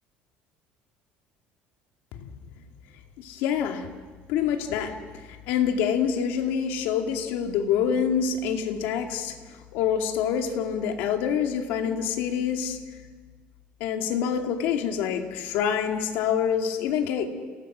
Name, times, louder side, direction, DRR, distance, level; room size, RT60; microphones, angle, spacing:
voice 1, 3.2-3.9 4.3-5.0 5.5-13.0 13.8-17.3, left 8 dB, 75° left, 4 dB, 2.4 m, -26 dB
30.0 x 18.5 x 6.2 m, 1.5 s
cardioid pair, 160°, 4 cm